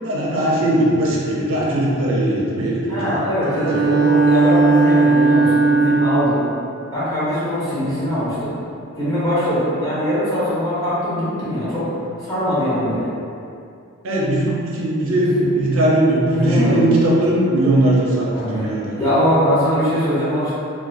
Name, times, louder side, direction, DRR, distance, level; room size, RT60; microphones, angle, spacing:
voice 1, 0.0-3.1 14.0-19.0, right 1 dB, 65° right, -4 dB, 0.5 m, -19 dB
voice 2, 2.9-6.4 6.9-8.5 9.0-11.9 12.2-13.1 15.2-15.5 16.2-16.9 18.3-18.6 19.0-20.5, equal, 15° left, -12 dB, 0.6 m, -21 dB
Bowed string instrument, 3.4-6.5, right 3 dB, 40° left, 1.0 m, -16 dB
2.4 x 2.2 x 2.5 m, 2.5 s
head